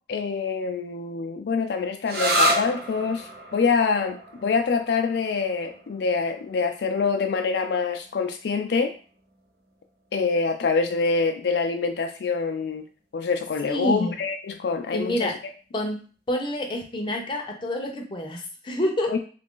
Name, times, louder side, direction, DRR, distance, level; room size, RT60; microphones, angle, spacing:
voice 1, 0.1-8.9 10.1-12.9 13.1-15.3 19.1-19.2, left 4 dB, 70° left, 5 dB, 0.4 m, -25 dB
sound 1, 2.1-9.4, equal, 60° right, 0.7 m, -30 dB
voice 2, 13.6-14.2 14.9-15.3 15.7-19.2, left 1 dB, 25° left, 2 dB, 0.6 m, -28 dB
3.2 x 2.4 x 3.6 m, 0.39 s
head